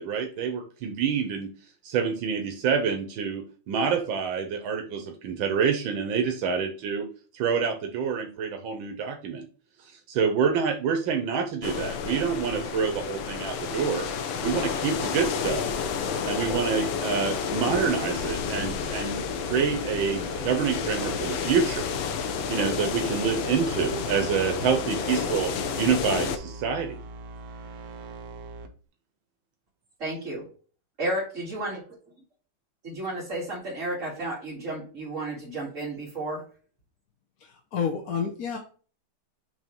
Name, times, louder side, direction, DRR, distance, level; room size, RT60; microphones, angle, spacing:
voice 1, 0.0-1.5 1.8-7.1 7.3-9.4 9.9-14.1 14.4-15.6 16.2-21.8 22.5-25.5 25.8-27.0, right 6 dB, 80° right, 4 dB, 1.6 m, -27 dB
sound 1, 11.6-26.4, left 6 dB, 80° left, 1.5 m, -30 dB
sound 2, 15.3-28.7, right 2 dB, 65° right, 1.4 m, -42 dB
voice 2, 30.0-30.5 31.0-32.0 32.8-36.4, right 1 dB, 40° right, -6 dB, 2.3 m, -32 dB
voice 3, 37.4-38.6, left 6 dB, 60° left, 1 dB, 1.1 m, -30 dB
7.0 x 3.1 x 4.4 m, 0.40 s
omnidirectional pair, 2.2 m